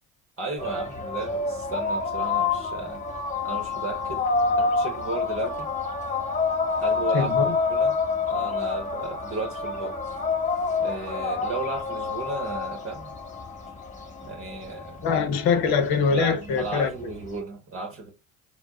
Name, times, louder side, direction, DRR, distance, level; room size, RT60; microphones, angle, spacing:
voice 1, 0.4-4.3 4.6-5.7 6.8-7.3 7.7-10.0 10.8-13.2 14.2-15.1 16.1-18.1, right 3 dB, 30° right, 0.9 m, -34 dB
sound 1, 0.6-17.4, left 4 dB, 15° left, 1.0 m, -28 dB
voice 2, 7.1-7.6 15.0-16.9, left 5 dB, 60° left, 0.9 m, -23 dB
4.4 x 2.0 x 2.3 m
hypercardioid pair, 65°, 43 cm